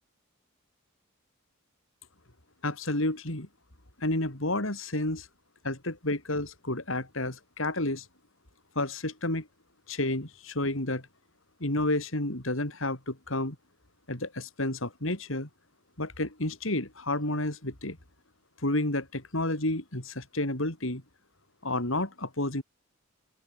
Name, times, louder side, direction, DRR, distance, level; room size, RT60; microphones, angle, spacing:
voice 1, 2.6-3.5 4.0-5.3 5.6-8.1 8.7-9.5 9.9-11.0 11.6-13.6 14.1-15.5 16.0-18.0 18.6-21.0 21.6-22.6, left 1 dB, 65° left, 4.4 m, -30 dB
open air
head